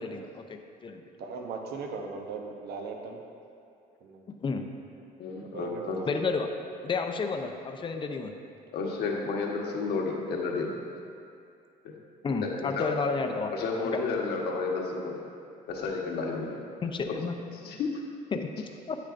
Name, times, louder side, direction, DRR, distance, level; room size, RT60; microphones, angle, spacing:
voice 1, 0.0-1.0 4.4-4.6 6.1-6.5 6.8-8.3 12.2-13.5 16.8-17.3 18.3-18.5 18.9-19.0, left 4 dB, 30° left, 5 dB, 0.6 m, -31 dB
voice 2, 1.2-3.2 4.0-4.2 5.5-6.1 7.2-7.3, right 4 dB, 70° right, 2 dB, 0.9 m, -38 dB
voice 3, 5.2-6.0 8.7-10.7 11.8-11.9 12.4-12.9 13.5-15.2 15.7-16.6 17.1-17.2 17.6-18.0, left 4 dB, 70° left, -1 dB, 1.3 m, -31 dB
9.8 x 8.6 x 2.6 m, 2.4 s
cardioid pair, 110°, 17 cm